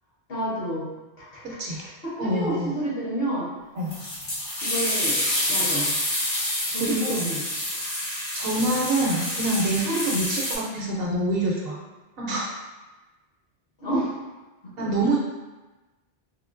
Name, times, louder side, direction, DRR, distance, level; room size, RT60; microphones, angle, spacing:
voice 1, 0.3-0.9 1.2-1.6 2.0-3.5 4.6-5.2 5.5-5.9 6.7-7.4 13.8-14.2 14.6-14.9, right 1 dB, 60° left, -7 dB, 1.3 m, -29 dB
voice 2, 1.4-1.8 2.2-2.7 3.8-4.0 6.8-7.3 8.3-11.8 12.2-12.5 14.8-15.2, right 1 dB, 65° right, -2 dB, 0.8 m, -26 dB
sound 1, 3.9-10.6, left 1 dB, 80° left, 1.6 m, -27 dB
3.5 x 2.9 x 2.5 m, 1.1 s
omnidirectional pair, 1.1 m